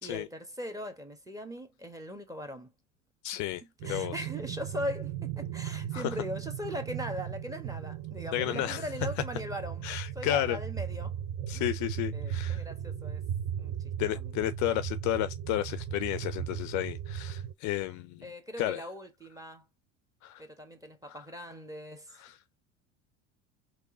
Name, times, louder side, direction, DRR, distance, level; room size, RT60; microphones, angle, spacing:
voice 1, 0.0-2.7 3.8-9.8 10.1-11.1 11.5-11.7 12.1-13.2 13.6-13.7 14.1-14.3 18.2-19.6 20.4-22.2, equal, 10° right, 1.3 m, -40 dB
voice 2, 3.2-3.6 3.9-4.3 5.9-6.2 8.3-8.9 9.8-10.6 11.5-12.7 14.0-18.3 18.6-18.9 20.2-20.4 21.0-21.2 22.1-22.4, left 14 dB, 50° left, 0.5 m, -32 dB
sound 1, 3.8-17.5, right 9 dB, 35° right, 0.5 m, -37 dB
3.6 x 3.0 x 3.7 m
hypercardioid pair, 75°, 39 cm